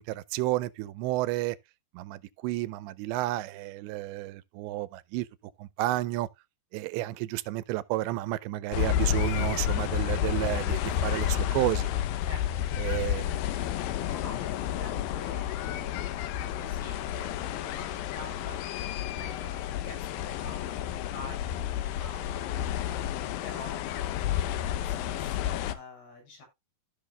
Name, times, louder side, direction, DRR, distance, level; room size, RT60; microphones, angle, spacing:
voice 1, 0.0-1.6 1.9-5.3 5.6-6.3 6.7-11.9 12.8-13.4, right 17 dB, 85° right, 2.9 m, -31 dB
sound 1, 8.7-25.7, left 11 dB, 80° left, 2.1 m, -31 dB
voice 2, 12.2-13.4 14.0-18.7 19.1-24.1 24.6-26.5, left 2 dB, 60° left, 8.2 m, -47 dB
14.5 x 6.2 x 2.3 m
omnidirectional pair, 5.0 m